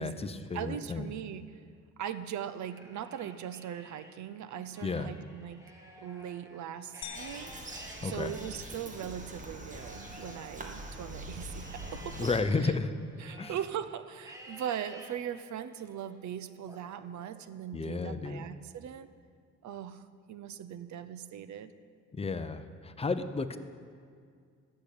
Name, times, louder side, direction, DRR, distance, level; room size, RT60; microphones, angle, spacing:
voice 1, 0.0-1.1 4.8-5.1 8.0-8.3 12.2-12.9 13.4-13.5 17.7-18.5 22.1-23.6, left 4 dB, 20° left, 9 dB, 0.8 m, -32 dB
voice 2, 0.5-1.6 2.0-5.7 6.0-7.5 8.0-12.2 12.6-12.7 13.2-19.1 19.6-20.0 20.3-21.7, right 9 dB, 70° right, 12 dB, 0.8 m, -40 dB
Livestock farm animals working animals, 2.5-4.1 4.6-11.1 11.6-13.7 14.2-15.1 15.7-16.1 16.7-17.7, equal, 10° right, 2.2 m, -53 dB
sound 1, 7.0-9.0, left 8 dB, 65° left, 1.2 m, -48 dB
Bird vocalization bird call bird song, 7.1-12.4, right 1 dB, 25° right, 1.8 m, -44 dB
14.0 x 6.7 x 8.6 m, 2.2 s
cardioid pair, 90°, 30 cm